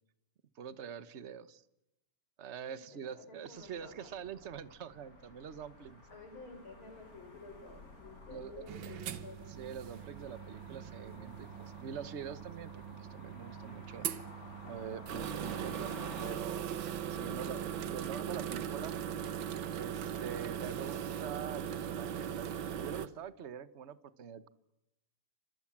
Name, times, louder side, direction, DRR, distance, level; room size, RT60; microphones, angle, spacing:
voice 1, 0.5-1.6 2.4-6.0 8.3-8.7 9.6-14.1 14.7-17.6 17.9-18.9 19.8-24.5, right 7 dB, 40° right, 15 dB, 1.1 m, -45 dB
voice 2, 2.6-4.1 6.1-9.4 17.2-18.0, left 3 dB, 75° left, 7 dB, 6.3 m, -52 dB
cars passing on a busy street (left to right), 3.5-16.4, left 2 dB, 40° left, 5.0 m, -54 dB
sound 1, 8.7-23.1, right 9 dB, 70° right, 1.9 m, -40 dB
29.5 x 26.5 x 7.4 m, 0.87 s
omnidirectional pair, 2.3 m